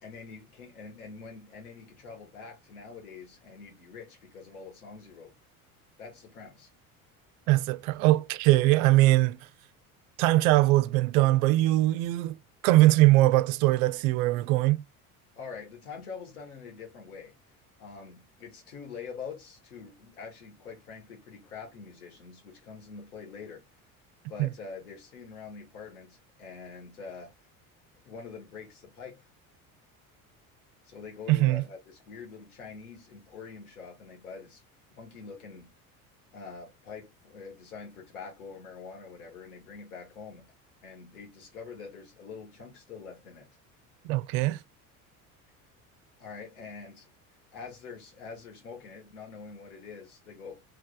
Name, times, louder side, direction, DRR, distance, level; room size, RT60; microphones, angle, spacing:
voice 1, 0.0-5.3 6.0-6.7 15.3-17.4 17.8-23.6 24.3-27.4 28.0-29.3 30.8-34.6 34.9-35.7 36.3-40.5 40.8-43.5 46.2-47.1 47.5-50.6, left 5 dB, 90° left, 1.7 m, -45 dB
voice 2, 7.5-9.4 10.2-12.3 12.6-14.8 24.4-24.5 31.3-31.6 44.1-44.6, right 17 dB, 70° right, 0.5 m, -21 dB
3.3 x 3.3 x 2.3 m
hypercardioid pair, 75°, 43 cm